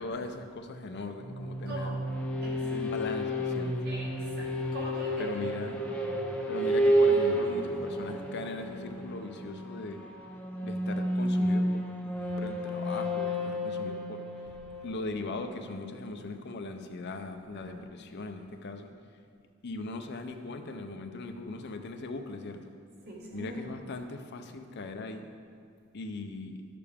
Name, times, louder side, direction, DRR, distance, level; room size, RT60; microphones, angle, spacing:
voice 1, 0.0-1.9 2.7-3.7 5.2-5.8 6.5-10.0 10.6-11.6 12.4-14.2 14.8-18.9 19.6-22.7 23.3-25.3 25.9-26.6, left 3 dB, 55° left, 6 dB, 0.6 m, -39 dB
sound 1, 1.2-15.8, equal, 5° left, 0.7 m, -31 dB
voice 2, 2.4-2.8 3.8-5.3 17.5-17.9 23.0-23.7, right 1 dB, 50° right, -4 dB, 1.8 m, -43 dB
11.5 x 6.7 x 3.5 m, 2.1 s
head